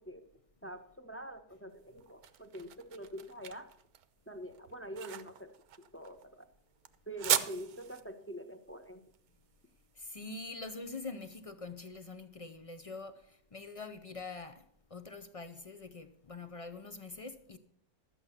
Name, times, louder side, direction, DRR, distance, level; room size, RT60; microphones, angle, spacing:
voice 1, 0.6-3.7 4.3-5.5 5.9-6.5 7.1-9.0, right 1 dB, 10° left, 0.7 m, -45 dB
sound 1, 1.7-10.8, right 10 dB, 85° right, 1.3 m, -39 dB
voice 2, 10.0-13.1 13.5-14.6 14.9-17.6, left 3 dB, 55° left, 0.4 m, -44 dB
12.5 x 8.5 x 5.7 m
omnidirectional pair, 1.5 m